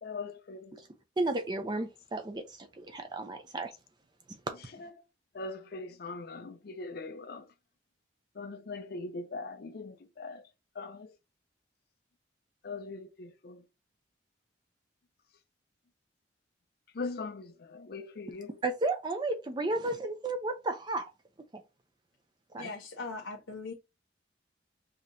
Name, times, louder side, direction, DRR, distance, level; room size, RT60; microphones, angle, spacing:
voice 1, 0.0-0.8 4.8-4.9 5.3-7.5 8.4-10.5 10.8-11.2 12.6-13.6 16.9-18.6, left 3 dB, 55° left, 0.4 m, -41 dB
voice 2, 1.2-3.7 18.6-21.0 21.5-21.6 22.5-22.7, right 2 dB, 20° right, 0.4 m, -33 dB
voice 3, 22.6-23.7, left 3 dB, 90° left, 0.7 m, -40 dB
4.9 x 2.8 x 2.6 m
head